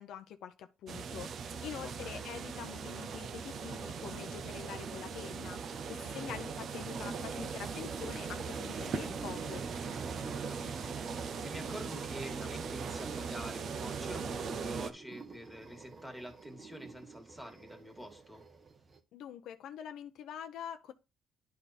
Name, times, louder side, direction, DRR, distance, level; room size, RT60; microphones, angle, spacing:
voice 1, 0.0-9.6 19.1-20.9, left 9 dB, 80° left, 0.7 m, -45 dB
sound 1, 0.9-14.9, right 5 dB, 55° right, 0.6 m, -39 dB
voice 2, 1.8-2.2 6.1-6.3 10.2-18.4, equal, 5° right, 1.9 m, -47 dB
sound 2, 7.7-19.0, right 4 dB, 35° right, 1.1 m, -51 dB
10.5 x 3.5 x 4.2 m
cardioid pair, 130°, 0 cm